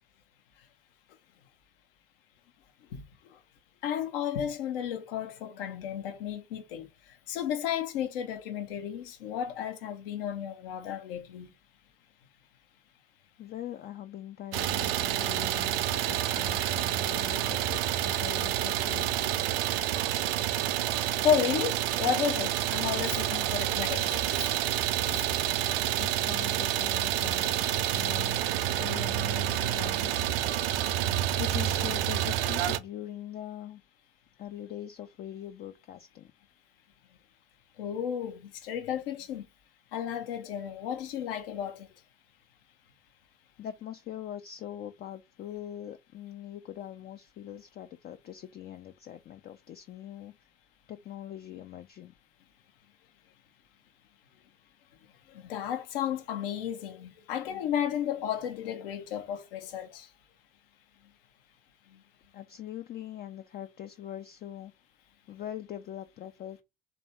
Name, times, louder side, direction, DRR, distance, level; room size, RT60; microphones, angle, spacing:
voice 1, 3.8-6.9 7.3-11.5 21.2-24.5 25.1-25.2 37.8-39.4 39.9-41.9 55.3-60.1, left 9 dB, 65° left, 0.8 m, -33 dB
voice 2, 13.4-19.3 26.0-27.6 27.9-28.4 28.8-30.3 31.4-33.8 34.4-36.3 43.6-50.3 50.9-52.1 62.3-64.7 65.3-66.6, left 11 dB, 35° left, 0.4 m, -42 dB
Idling, 14.5-32.8, right 12 dB, 70° right, 0.5 m, -28 dB
3.3 x 2.7 x 4.3 m
figure-of-eight pair, 55°, 30 cm